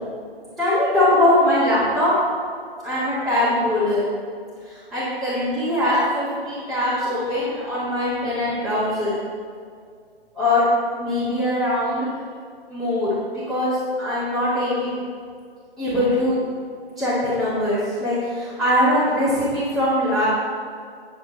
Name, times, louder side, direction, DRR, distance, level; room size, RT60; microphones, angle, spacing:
voice 1, 0.6-2.1 2.8-4.1 4.7-9.2 10.3-10.6 10.9-12.1 12.7-15.0 15.8-16.4 17.0-20.3, left 1 dB, ahead, -14 dB, 2.2 m, -21 dB
9.8 x 6.8 x 4.1 m, 2.2 s
figure-of-eight pair, 130°, 31 cm